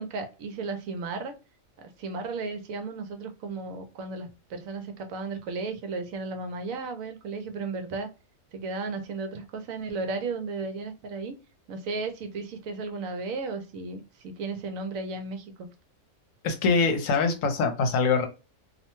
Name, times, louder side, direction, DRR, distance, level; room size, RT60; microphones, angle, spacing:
voice 1, 0.0-1.3 1.8-8.1 8.5-11.3 11.7-15.7, right 3 dB, 75° right, 1.0 m, -34 dB
voice 2, 16.4-18.3, left 4 dB, 70° left, 1.0 m, -23 dB
2.6 x 2.1 x 2.9 m
omnidirectional pair, 1.5 m